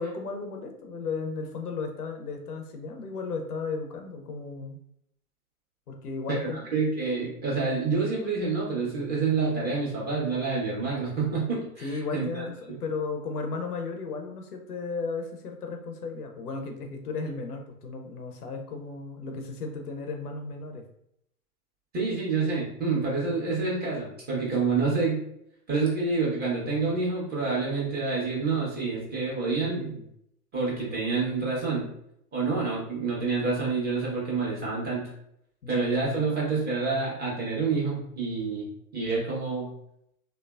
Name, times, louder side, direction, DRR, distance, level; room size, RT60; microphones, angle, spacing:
voice 1, 0.0-4.8 5.9-6.7 11.8-20.8 29.7-30.1 35.6-35.8, left 4 dB, 90° left, 4 dB, 0.6 m, -35 dB
voice 2, 6.3-12.4 21.9-25.2 25.7-29.9 30.5-31.9 32.3-35.1 35.7-38.7 38.9-39.7, right 4 dB, 20° right, -6 dB, 1.1 m, -28 dB
3.2 x 2.0 x 2.3 m, 0.74 s
hypercardioid pair, 105°, 45 cm